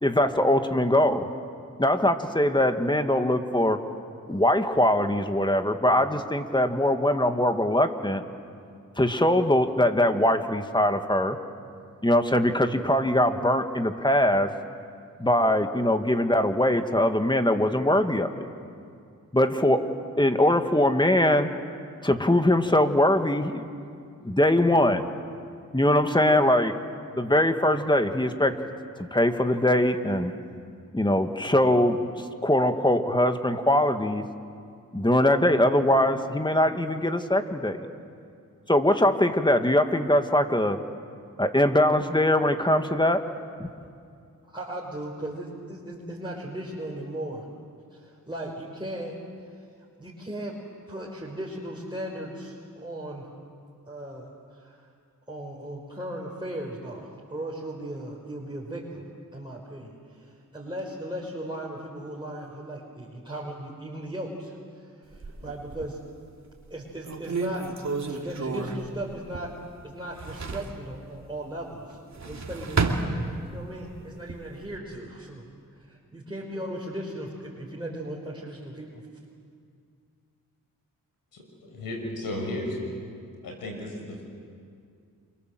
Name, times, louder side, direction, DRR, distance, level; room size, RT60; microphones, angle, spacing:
voice 1, 0.0-1.3 1.8-3.8 4.3-8.2 9.0-11.4 12.0-14.5 15.2-18.5 19.3-19.9 20.2-21.5 22.0-23.6 24.2-25.1 25.7-26.7 27.2-28.6 29.1-30.3 30.9-32.0 32.4-34.2 34.9-37.9 38.7-40.8 41.4-43.2 43.6-43.7, left 1 dB, 15° left, 7 dB, 2.1 m, -22 dB
voice 2, 44.4-47.5 47.9-49.2 49.4-49.6 50.0-50.6 50.9-53.3 53.9-54.8 55.3-59.0 59.3-64.6 64.8-66.0 66.7-69.5 69.8-72.0 72.2-75.5 75.8-79.0, right 1 dB, 15° right, -4 dB, 5.2 m, -37 dB
sound 1, 65.1-66.1 66.6-66.7 67.0-69.7 70.0-70.8 71.9-73.7 74.1-74.8, right 3 dB, 55° right, 2.7 m, -31 dB
voice 3, 81.3-82.8 83.4-84.2, left 1 dB, 90° left, 1 dB, 6.3 m, -34 dB
28.5 x 25.0 x 7.8 m, 2.3 s
cardioid pair, 45°, 34 cm